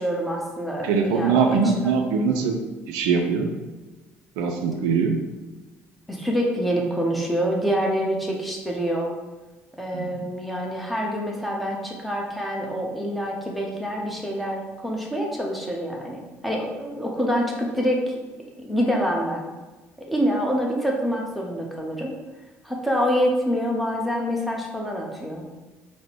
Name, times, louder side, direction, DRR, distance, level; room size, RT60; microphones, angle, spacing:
voice 1, 0.0-2.0 6.1-9.1 9.8-18.1 18.7-19.4 20.1-22.1 22.6-25.4, equal, ahead, -2 dB, 0.9 m, -26 dB
voice 2, 0.8-2.6 2.9-3.5 4.4-5.2 9.9-10.1, right 5 dB, 65° right, 3 dB, 0.4 m, -22 dB
3.8 x 2.1 x 4.4 m, 1.2 s
figure-of-eight pair, 55°, 7 cm